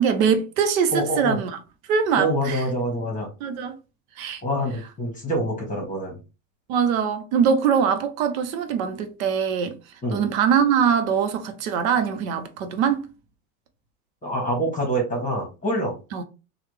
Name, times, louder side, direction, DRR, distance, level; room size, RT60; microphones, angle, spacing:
voice 1, 0.0-1.5 1.9-2.6 3.4-3.8 4.2-4.4 6.7-9.8 10.1-13.0 16.1-16.2, right 7 dB, 70° right, 0.8 m, -22 dB
voice 2, 0.9-1.4 2.2-3.3 4.4-6.2 10.0-10.2 14.2-15.9, right 1 dB, 20° left, 1.3 m, -26 dB
3.2 x 2.4 x 3.2 m
hypercardioid pair, 105°, 43 cm